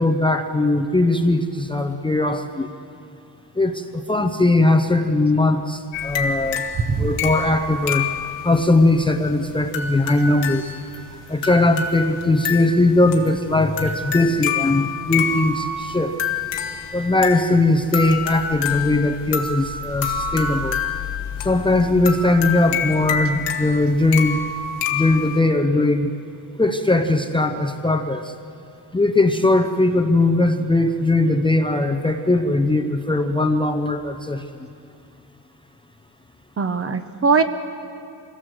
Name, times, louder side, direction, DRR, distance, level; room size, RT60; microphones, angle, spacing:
voice 1, 0.0-2.7 3.6-6.6 7.0-8.1 8.4-10.6 11.3-16.1 16.9-20.8 21.4-24.4 24.9-26.1 26.6-28.3 28.9-34.4, left 2 dB, 10° left, 5 dB, 0.7 m, -19 dB
sound 1, 5.9-25.4, left 6 dB, 85° left, 1.7 m, -28 dB
voice 2, 6.9-7.3 36.6-37.4, right 5 dB, 35° right, 9 dB, 0.9 m, -21 dB
24.5 x 16.5 x 7.8 m, 2.5 s
wide cardioid pair, 160°, 42 cm